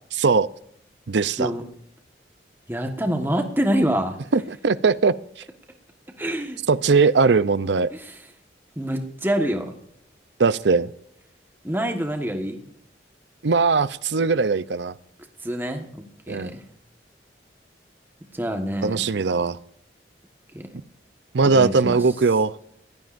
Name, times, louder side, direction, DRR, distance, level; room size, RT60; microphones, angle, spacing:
voice 1, 0.2-0.5 1.1-1.5 4.3-5.1 6.7-7.9 10.4-10.9 13.4-14.9 16.3-16.5 18.8-19.6 21.3-22.5, right 4 dB, 80° right, 0.6 m, -20 dB
voice 2, 2.7-4.2 6.2-6.6 7.9-8.1 8.8-9.8 11.6-12.6 15.4-16.6 18.3-19.1 20.5-20.6 21.5-22.0, equal, 10° right, 1.4 m, -26 dB
21.0 x 16.5 x 2.6 m
head